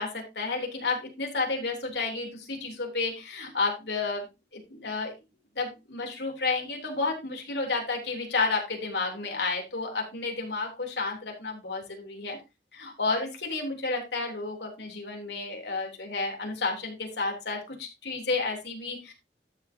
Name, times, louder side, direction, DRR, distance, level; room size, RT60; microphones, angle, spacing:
voice 1, 0.0-4.2 4.5-5.1 5.5-12.4 12.7-19.1, left 3 dB, 70° left, 1 dB, 3.4 m, -31 dB
12.5 x 7.7 x 2.8 m, 0.25 s
head